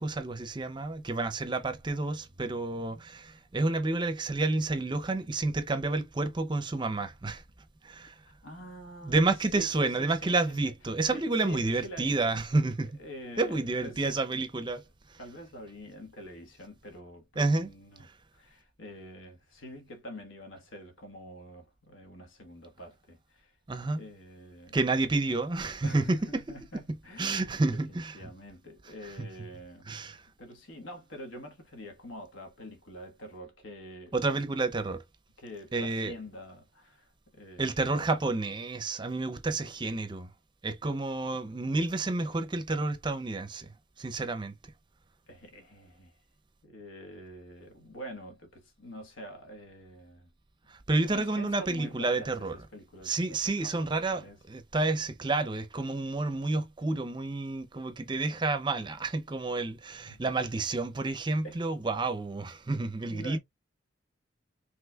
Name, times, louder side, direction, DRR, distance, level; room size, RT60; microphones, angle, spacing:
voice 1, 0.0-7.4 7.8-8.1 9.0-12.9 13.4-14.8 15.1-15.2 17.4-17.7 23.7-24.0 24.7-26.4 27.2-28.1 29.9-30.2 34.1-35.0 35.7-36.1 37.6-40.3 40.6-43.7 44.0-44.5 50.7-52.5 53.0-54.2 54.5-63.4, right 3 dB, 25° right, 0.5 m, -30 dB
voice 2, 8.3-9.2 9.6-10.7 11.1-12.3 13.0-14.4 15.2-18.1 18.3-23.6 23.9-24.8 25.8-29.9 30.4-34.2 35.4-37.9 45.3-46.2 46.6-50.3 51.0-54.4 60.0-60.2 61.4-61.6 63.0-63.4, equal, 90° left, 1.4 m, -46 dB
5.4 x 3.2 x 2.3 m
head